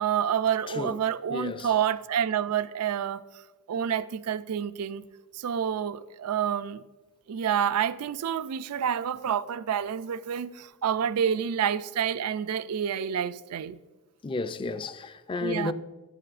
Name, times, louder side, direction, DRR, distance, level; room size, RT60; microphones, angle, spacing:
voice 1, 0.0-3.2 3.7-5.0 5.3-6.8 7.3-13.8 15.4-15.7, right 8 dB, 85° right, 0.4 m, -28 dB
voice 2, 0.7-1.0 1.3-1.7 14.2-15.7, left 3 dB, 25° left, 0.4 m, -32 dB
12.5 x 9.3 x 2.5 m
head